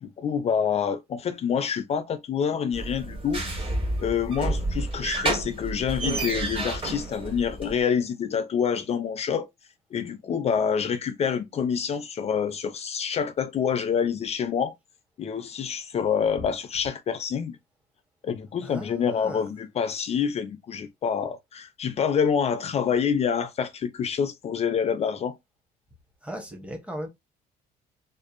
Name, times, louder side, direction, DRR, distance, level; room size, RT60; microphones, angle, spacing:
voice 1, 0.0-3.7 4.0-9.5 9.9-14.7 15.2-17.6 18.2-25.4, left 7 dB, 40° left, 0.4 m, -27 dB
sound 1, 2.7-7.8, right 2 dB, 30° right, 1.5 m, -30 dB
voice 2, 18.6-19.5 26.2-27.1, equal, 5° right, 0.8 m, -37 dB
2.6 x 2.5 x 2.4 m
cardioid pair, 110°, 17 cm